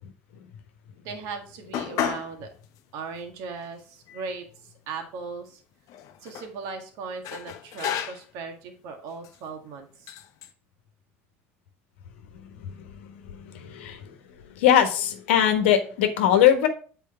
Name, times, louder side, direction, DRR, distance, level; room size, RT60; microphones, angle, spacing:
voice 1, 1.0-2.5 2.9-5.6 6.2-10.1, right 4 dB, 65° right, 4 dB, 1.9 m, -38 dB
sound 1, 1.7-2.3 2.7-2.8 3.6-3.7 4.0-5.0 5.9-6.5 7.2-8.4 9.1-9.4 10.1-10.5, left 9 dB, 60° left, 1.0 m, -33 dB
voice 2, 13.5-14.0 14.6-16.7, left 10 dB, 75° left, 7 dB, 1.3 m, -20 dB
8.6 x 4.5 x 4.3 m, 0.41 s
hypercardioid pair, 65°, 7 cm